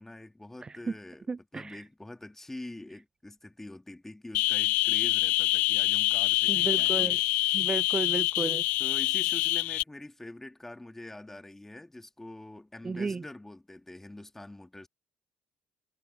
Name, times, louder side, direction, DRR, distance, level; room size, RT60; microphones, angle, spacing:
voice 1, 0.0-7.5 8.8-14.9, left 1 dB, 10° left, 3.1 m, -45 dB
voice 2, 1.3-1.8 6.5-7.2 7.5-8.6 12.8-13.2, right 4 dB, 25° right, 0.6 m, -33 dB
sound 1, 4.3-9.8, left 18 dB, 65° left, 0.5 m, -26 dB
hypercardioid pair, 50°, 3 cm